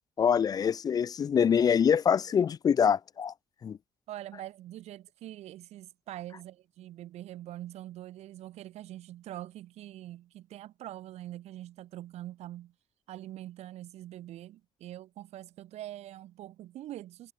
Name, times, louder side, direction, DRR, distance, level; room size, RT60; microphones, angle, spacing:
voice 1, 0.2-3.3 3.6-3.8, left 7 dB, 35° left, 0.4 m, -25 dB
voice 2, 4.1-12.7 13.1-17.3, right 13 dB, 80° right, 5.1 m, -44 dB
cardioid pair, 135°, 11 cm